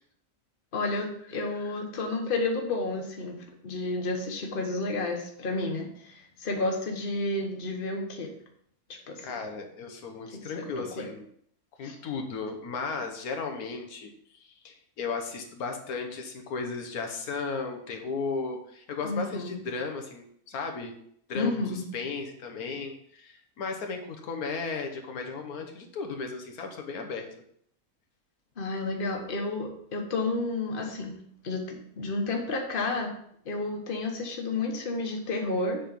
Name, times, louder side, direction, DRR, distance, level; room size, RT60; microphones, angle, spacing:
voice 1, 0.7-3.4 3.6-8.3 8.9-9.2 10.8-11.1 11.8-12.0 19.0-19.6 21.3-21.9 28.6-31.2 31.4-33.1 33.4-35.8, left 2 dB, 40° left, 2 dB, 1.3 m, -31 dB
voice 2, 9.2-11.3 11.8-20.9 21.3-27.3, left 4 dB, 90° left, 4 dB, 1.5 m, -35 dB
7.3 x 4.4 x 5.2 m, 0.66 s
omnidirectional pair, 1.5 m